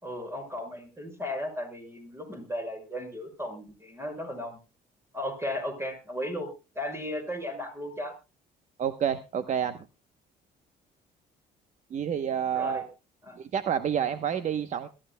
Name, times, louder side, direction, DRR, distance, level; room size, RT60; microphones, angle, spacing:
voice 1, 0.0-4.6 5.1-6.5 6.7-8.1 12.5-12.8 13.2-13.4, left 1 dB, 15° right, 5 dB, 5.9 m, -35 dB
voice 2, 8.8-9.8 11.9-12.9 13.3-14.9, right 8 dB, 45° right, 10 dB, 0.9 m, -29 dB
22.0 x 12.5 x 2.2 m, 0.29 s
cardioid pair, 110°, 17 cm